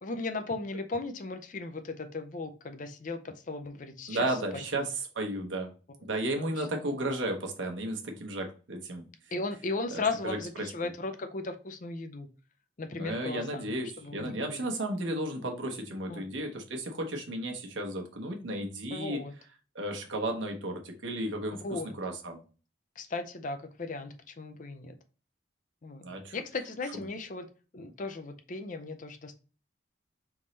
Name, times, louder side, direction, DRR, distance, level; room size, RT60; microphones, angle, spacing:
voice 1, 0.0-4.9 6.4-6.7 9.3-12.3 12.8-14.7 16.1-16.3 18.9-19.3 21.6-22.0 23.0-25.0 25.8-26.1 26.3-27.5 27.7-29.4, left 3 dB, 45° left, 8 dB, 0.5 m, -37 dB
voice 2, 4.1-4.9 5.1-5.7 6.0-9.1 9.9-10.4 13.0-19.2 19.7-22.4 26.0-26.3, right 1 dB, 85° right, 2 dB, 1.0 m, -34 dB
3.9 x 3.5 x 3.2 m, 0.36 s
head